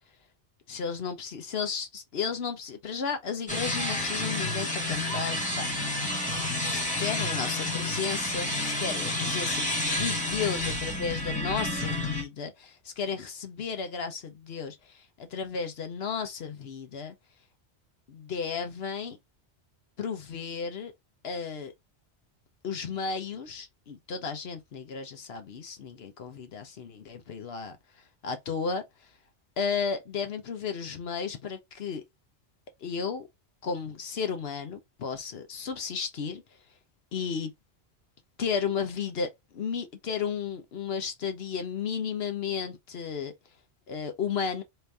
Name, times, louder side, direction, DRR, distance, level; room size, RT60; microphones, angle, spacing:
voice 1, 0.7-5.8 6.6-17.1 18.1-19.2 20.0-20.9 21.2-21.7 22.6-27.8 28.2-29.1 29.6-32.0 32.8-33.3 33.6-36.4 37.1-37.5 38.4-39.3 39.5-43.3 43.9-44.6, left 6 dB, 65° left, 1.0 m, -33 dB
sound 1, 3.5-12.2, left 1 dB, 5° left, 1.2 m, -30 dB
4.3 x 2.6 x 3.3 m
omnidirectional pair, 1.2 m